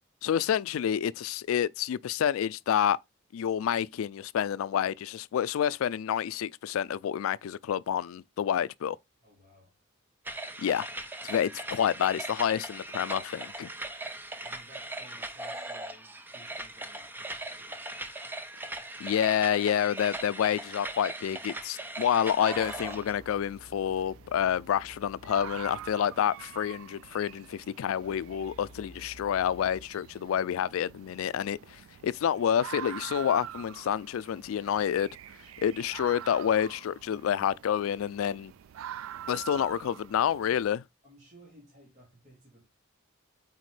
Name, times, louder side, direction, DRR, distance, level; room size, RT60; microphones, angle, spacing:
voice 1, 0.2-3.0 3.3-9.0 10.6-10.9 11.2-13.7 19.0-35.1 35.6-38.5 39.3-40.8, left 9 dB, 90° left, 0.3 m, -28 dB
voice 2, 9.2-9.8 13.9-18.0 41.0-42.7, right 1 dB, 35° right, 2.3 m, -57 dB
sound 1, 10.3-23.1, right 2 dB, 10° right, 0.5 m, -39 dB
sound 2, 22.3-40.7, right 10 dB, 85° right, 0.3 m, -46 dB
sound 3, 22.5-26.1 26.4-26.5 27.1-29.9, left 1 dB, 60° left, 0.8 m, -53 dB
8.2 x 4.2 x 3.2 m
head